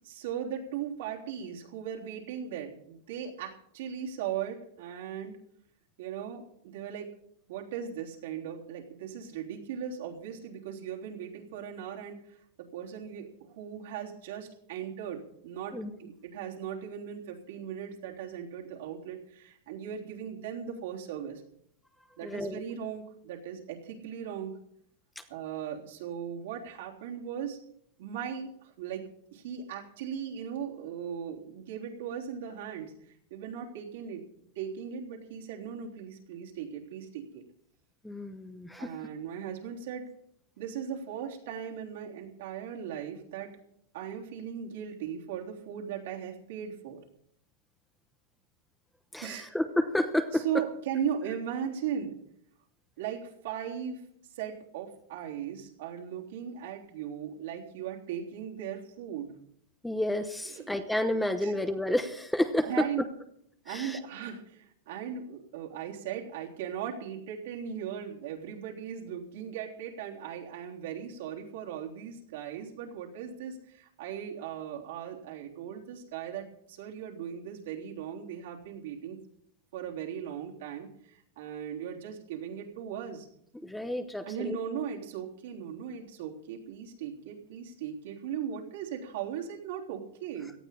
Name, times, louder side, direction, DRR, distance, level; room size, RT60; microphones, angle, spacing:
voice 1, 0.0-5.4 6.0-7.1 7.5-21.4 22.2-24.5 25.3-27.6 28.0-29.0 29.3-34.2 34.5-37.4 38.8-40.1 40.6-43.5 43.9-47.0 49.2-49.5 50.3-52.2 53.0-54.0 54.3-59.3 60.5-60.7 61.4-61.5 62.6-63.0 63.6-79.2 79.7-83.3 84.3-90.5, right 8 dB, 70° right, -1 dB, 3.5 m, -38 dB
voice 2, 22.2-22.6 25.2-25.3 38.0-38.9 49.1-50.4 59.8-62.9 63.7-64.0 83.6-84.6, left 1 dB, 5° left, 8 dB, 1.0 m, -30 dB
18.0 x 13.0 x 4.2 m, 0.70 s
supercardioid pair, 140°, 0 cm